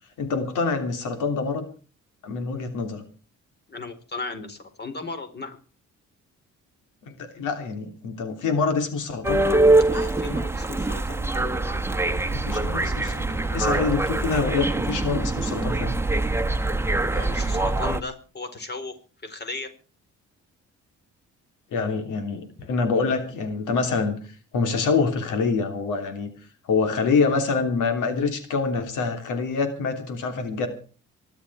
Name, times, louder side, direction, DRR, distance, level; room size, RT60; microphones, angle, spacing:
voice 1, 0.2-1.7 2.2-3.0 7.0-9.5 12.1-15.9 21.7-26.3 26.7-30.7, left 4 dB, 85° left, 7 dB, 3.0 m, -26 dB
voice 2, 3.7-5.6 9.9-11.2 17.1-18.9 19.2-19.7 22.6-22.7, left 3 dB, 35° left, 8 dB, 4.4 m, -35 dB
sound 1, 9.2-18.0, right 2 dB, 10° right, 1.4 m, -23 dB
25.0 x 11.5 x 4.7 m, 0.38 s
cardioid pair, 90°, 30 cm